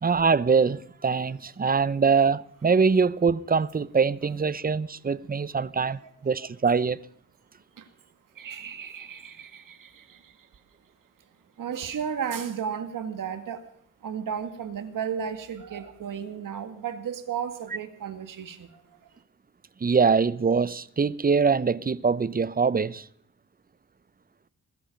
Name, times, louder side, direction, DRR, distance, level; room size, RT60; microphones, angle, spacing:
voice 1, 0.0-7.0 19.8-23.1, right 5 dB, 30° right, 0.7 m, -23 dB
voice 2, 8.4-10.5 11.6-13.7 14.0-19.0, right 7 dB, 85° right, 2.0 m, -34 dB
20.5 x 13.5 x 5.3 m
cardioid pair, 90°, 32 cm